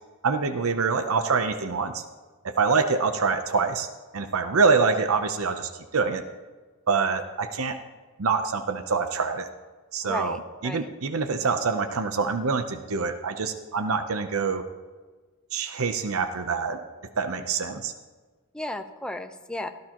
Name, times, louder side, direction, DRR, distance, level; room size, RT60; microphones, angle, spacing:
voice 1, 0.2-2.0 2.4-3.9 4.1-6.2 6.9-7.8 8.2-9.5 9.9-10.4 10.6-14.6 15.5-16.8 17.2-17.9, right 4 dB, 90° right, 8 dB, 0.7 m, -25 dB
voice 2, 10.0-10.9 18.5-19.7, left 1 dB, 5° left, 6 dB, 0.7 m, -34 dB
16.5 x 14.0 x 3.0 m, 1.4 s
head